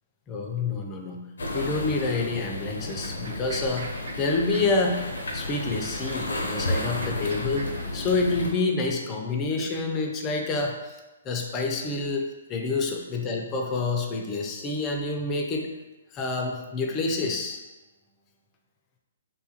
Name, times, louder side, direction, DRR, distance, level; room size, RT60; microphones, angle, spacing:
voice 1, 0.3-1.3 1.5-5.1 5.3-11.0 11.2-15.7 16.1-17.6, left 3 dB, 25° left, 2 dB, 0.4 m, -28 dB
sound 1, 1.4-8.5, left 2 dB, 80° left, 0.5 m, -32 dB
sound 2, 2.9-7.9, right 2 dB, 65° right, 0.3 m, -44 dB
2.7 x 2.3 x 2.7 m, 1.1 s
figure-of-eight pair, 130°, 0 cm